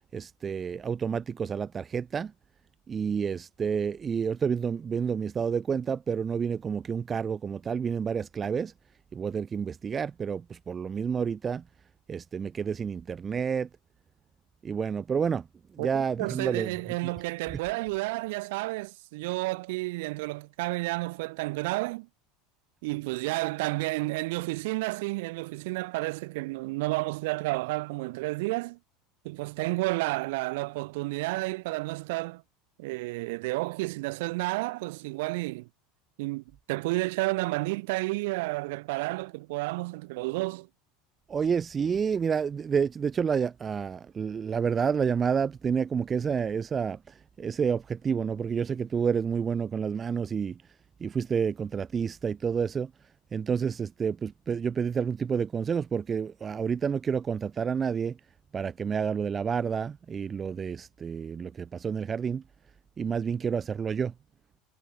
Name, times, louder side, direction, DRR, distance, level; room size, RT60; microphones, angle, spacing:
voice 1, 0.1-2.3 2.9-8.7 9.1-11.6 12.1-13.7 14.6-15.5 15.7-16.7 41.3-47.0 47.4-50.6 51.0-52.9 53.3-58.2 58.5-62.4 63.0-64.1, right 6 dB, 20° right, 0.4 m, -29 dB
voice 2, 16.2-22.1 22.8-28.8 29.2-32.4 32.8-35.7 36.2-40.7, right 23 dB, 75° right, 2.4 m, -31 dB
supercardioid pair, 140°, 0 cm